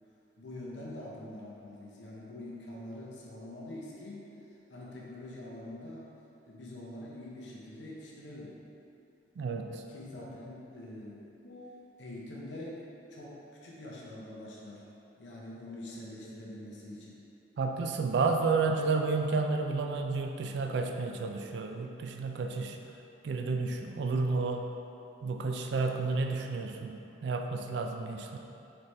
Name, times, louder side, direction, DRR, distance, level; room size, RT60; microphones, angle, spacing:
voice 1, 0.4-4.3 4.7-6.1 6.5-8.6 9.9-14.8 15.2-17.2, left 1 dB, 75° left, -4 dB, 0.6 m, -45 dB
voice 2, 9.4-9.8 17.6-22.8 23.2-24.7 25.2-28.4, right 4 dB, 70° right, 4 dB, 0.3 m, -31 dB
4.0 x 3.4 x 3.1 m, 2.8 s
head